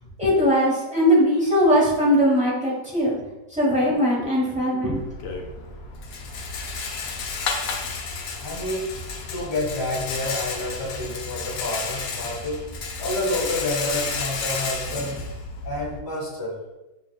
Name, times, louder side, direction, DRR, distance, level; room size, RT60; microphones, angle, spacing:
voice 1, 0.2-3.2 3.5-5.0 15.0-15.1, equal, 5° right, -6 dB, 0.7 m, -20 dB
Rattle, 4.9-16.0, left 4 dB, 70° left, 1.0 m, -32 dB
voice 2, 8.4-8.9 9.3-12.7 13.0-15.2 15.6-16.6, left 1 dB, 20° left, -4 dB, 0.9 m, -29 dB
5.0 x 2.9 x 2.2 m, 1.0 s
omnidirectional pair, 1.7 m